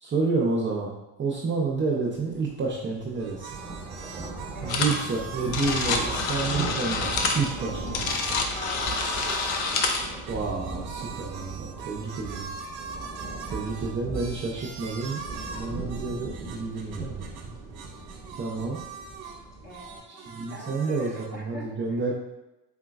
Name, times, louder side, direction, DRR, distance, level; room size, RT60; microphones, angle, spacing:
voice 1, 0.0-3.5 4.6-8.2 10.3-12.5 13.5-15.2 15.5-17.3 18.4-18.8 20.1-22.1, right 4 dB, 25° right, -4 dB, 0.5 m, -29 dB
sound 1, 2.2-2.4 2.7-20.0, right 3 dB, 10° right, 0.9 m, -38 dB
sound 2, 3.2-6.6 7.1-9.7 10.0-17.5 17.7-19.4 19.7-21.3, right 5 dB, 50° right, 0.9 m, -41 dB
sound 3, 4.7-5.0 5.3-10.1, left 4 dB, 70° left, 0.7 m, -28 dB
voice 2, 8.5-10.3 14.6-14.8 18.0-18.3 19.6-22.0, right 1 dB, 20° left, -2 dB, 0.9 m, -45 dB
3.9 x 3.7 x 2.3 m, 1.0 s
supercardioid pair, 100°, 48 cm